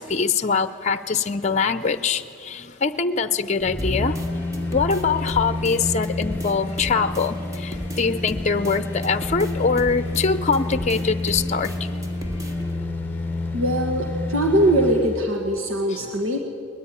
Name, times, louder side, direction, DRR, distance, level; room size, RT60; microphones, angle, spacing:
voice 1, 0.0-4.2 4.7-11.7 15.9-16.0, left 5 dB, 35° left, 12 dB, 0.6 m, -23 dB
sound 1, 3.6-15.2 15.6-15.7, left 2 dB, 10° left, 1.0 m, -29 dB
sound 2, 3.8-12.8, equal, 15° right, 2.0 m, -37 dB
voice 2, 13.5-16.4, right 1 dB, 85° right, 2 dB, 1.9 m, -21 dB
21.0 x 20.0 x 9.8 m, 2.5 s
head